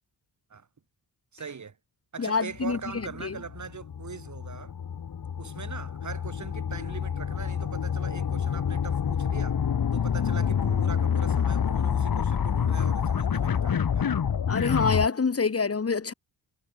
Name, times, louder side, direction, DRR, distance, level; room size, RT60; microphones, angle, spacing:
voice 1, 1.3-1.8 2.1-4.7 5.4-9.6 9.9-14.1, right 5 dB, 45° right, 5.2 m, -41 dB
voice 2, 2.2-2.8 3.2-3.4 14.5-16.1, left 5 dB, 35° left, 2.6 m, -26 dB
sound 1, 2.6-15.1, left 7 dB, 60° left, 4.0 m, -27 dB
cardioid pair, 105°, 39 cm